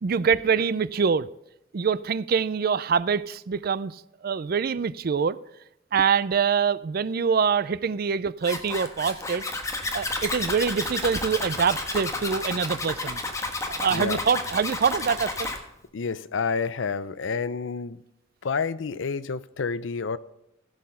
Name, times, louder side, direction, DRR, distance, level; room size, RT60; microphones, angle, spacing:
voice 1, 0.0-1.3 1.7-5.4 5.9-9.4 9.9-13.2 13.7-15.5, right 6 dB, 50° right, 18 dB, 0.4 m, -25 dB
Zipper (clothing), 8.4-15.6, left 2 dB, 15° left, 1.3 m, -31 dB
voice 2, 15.9-18.0 18.4-20.2, left 5 dB, 70° left, 16 dB, 0.5 m, -29 dB
15.5 x 6.6 x 5.6 m, 0.84 s
head